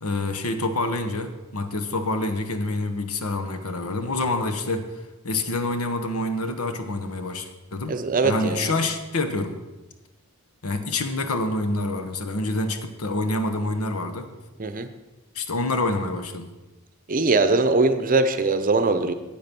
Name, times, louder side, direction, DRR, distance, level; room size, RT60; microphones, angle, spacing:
voice 1, 0.0-4.9 5.2-7.9 8.2-9.6 10.6-14.3 15.3-16.5, left 2 dB, 80° left, 8 dB, 1.1 m, -27 dB
voice 2, 7.9-8.7 14.6-14.9 17.1-19.1, right 3 dB, 40° right, 10 dB, 0.7 m, -21 dB
8.7 x 8.7 x 6.0 m, 1.1 s
head